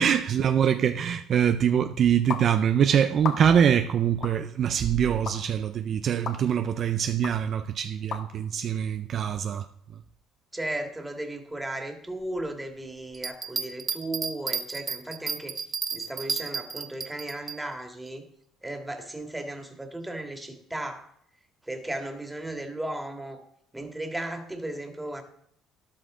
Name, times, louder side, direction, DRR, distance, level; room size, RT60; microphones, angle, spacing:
voice 1, 0.0-9.6, right 8 dB, 50° right, 0.6 m, -24 dB
sound 1, 2.3-2.5 3.2-3.7 4.2-4.4 5.3-5.4 6.3-6.4 7.2-7.3 8.1-8.2, left 6 dB, 55° left, 1.8 m, -33 dB
voice 2, 10.5-15.5 15.9-18.2 18.6-21.1 21.6-23.4 23.7-25.2, right 1 dB, 10° right, 2.1 m, -35 dB
Bell, 13.1-17.6 18.1-18.2, right 5 dB, 35° right, 1.1 m, -32 dB
13.0 x 11.0 x 3.8 m
cardioid pair, 105°, 0 cm